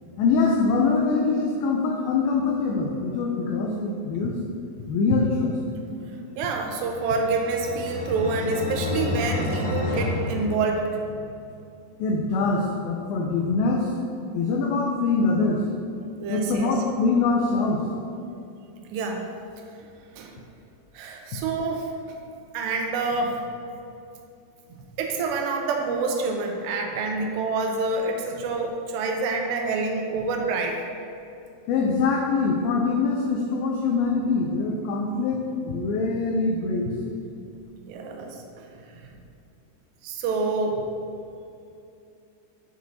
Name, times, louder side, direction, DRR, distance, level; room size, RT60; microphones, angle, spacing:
voice 1, 0.2-4.4 4.9-5.6 12.0-13.9 14.3-15.6 16.3-17.9 31.7-37.1, left 4 dB, 85° left, 0 dB, 2.1 m, -24 dB
voice 2, 6.4-10.9 16.2-16.7 18.9-19.3 20.2-20.3 20.9-22.2 22.5-23.4 25.0-30.8 37.9-38.7 38.9-39.1 40.0-40.9, right 3 dB, 85° right, 2 dB, 2.8 m, -27 dB
sound 1, 6.7-11.3, left 2 dB, 55° left, 1.7 m, -30 dB
9.2 x 6.3 x 2.8 m, 2.6 s
omnidirectional pair, 4.9 m